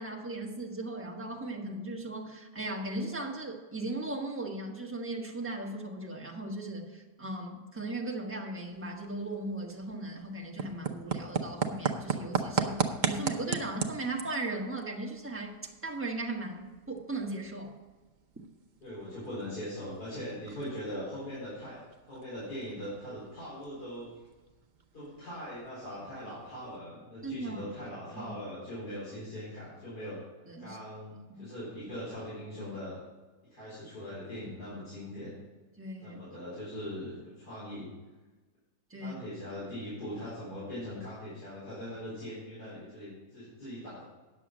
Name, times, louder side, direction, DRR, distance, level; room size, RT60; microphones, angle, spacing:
voice 1, 0.0-15.5 15.8-17.7 27.2-27.7 28.2-28.3 30.5-30.8 31.3-31.4 35.8-36.2 38.9-39.2, right 2 dB, 10° right, -1 dB, 1.2 m, -37 dB
sound 1, 8.6-26.8, right 5 dB, 70° right, 0.4 m, -39 dB
voice 2, 18.8-24.1 24.9-30.2 30.6-33.0 33.5-35.3 36.0-37.9 39.0-44.0, equal, 65° left, -10 dB, 4.9 m, -41 dB
9.7 x 6.9 x 6.2 m, 1.2 s
omnidirectional pair, 1.8 m